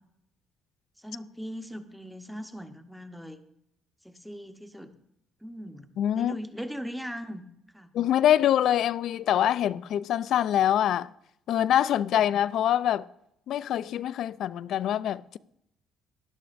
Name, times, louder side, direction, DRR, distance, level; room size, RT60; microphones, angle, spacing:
voice 1, 1.0-3.4 4.0-4.9 5.4-5.9 6.2-7.5 7.7-7.9 12.2-12.3 14.2-14.3, equal, ahead, 0.8 m, -39 dB
voice 2, 6.0-6.4 7.9-11.1 11.5-13.1 13.5-15.4, left 11 dB, 65° left, 0.3 m, -24 dB
17.5 x 11.5 x 2.5 m
cardioid pair, 120°, 0 cm